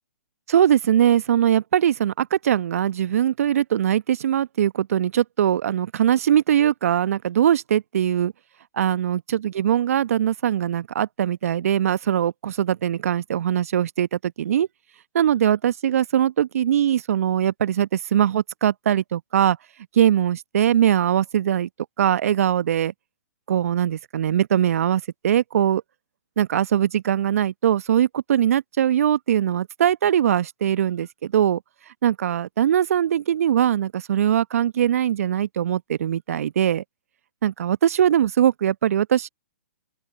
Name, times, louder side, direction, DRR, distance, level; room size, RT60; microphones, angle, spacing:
voice 1, 0.5-8.3 8.8-14.7 15.1-19.6 19.9-21.7 22.0-22.9 23.5-25.8 26.4-31.6 32.0-36.8 37.4-39.3, right 10 dB, 60° right, 1.0 m, -21 dB
open air
figure-of-eight pair, 120°, 9 cm